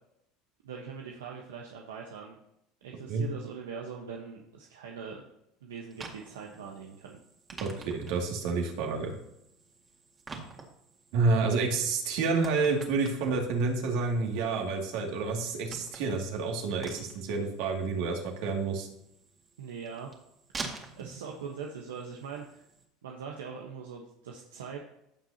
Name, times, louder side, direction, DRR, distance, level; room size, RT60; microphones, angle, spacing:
voice 1, 0.6-2.4 2.8-5.2 5.6-7.2 19.6-20.1 20.6-22.7 23.0-24.8, right 6 dB, 90° right, 0 dB, 1.1 m, -42 dB
sound 1, 5.9-22.8, right 3 dB, 30° right, 2.1 m, -48 dB
voice 2, 7.6-9.2 11.1-18.9, right 4 dB, 70° right, 1 dB, 2.4 m, -29 dB
15.5 x 6.4 x 2.9 m, 0.80 s
hypercardioid pair, 90°, 0 cm